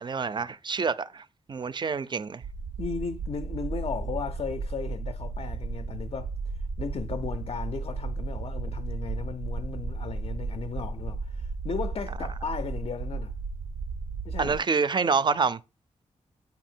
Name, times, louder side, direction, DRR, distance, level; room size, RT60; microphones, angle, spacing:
voice 1, 0.0-2.4 14.4-15.6, right 5 dB, 35° right, 0.4 m, -27 dB
sound 1, 2.4-14.6, right 4 dB, 85° right, 0.5 m, -34 dB
voice 2, 2.8-6.3 6.8-13.3 14.2-14.5, left 6 dB, 50° left, 0.4 m, -35 dB
8.0 x 2.7 x 4.4 m
cardioid pair, 85°, 13 cm